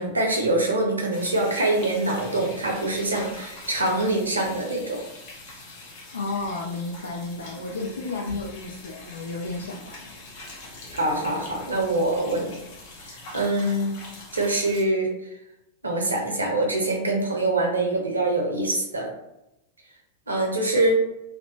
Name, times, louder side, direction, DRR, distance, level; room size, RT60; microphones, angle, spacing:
voice 1, 0.0-5.0 7.7-7.8 10.9-12.5 13.3-14.0 14.3-15.1 15.8-19.1 20.3-21.0, right 2 dB, 75° right, 0 dB, 0.6 m, -24 dB
sound 1, 1.1-14.8, left 2 dB, 50° left, 0.8 m, -43 dB
voice 2, 6.1-10.0, left 3 dB, 70° left, 0 dB, 0.3 m, -32 dB
2.7 x 2.0 x 2.7 m, 0.86 s
figure-of-eight pair, 90°, 0 cm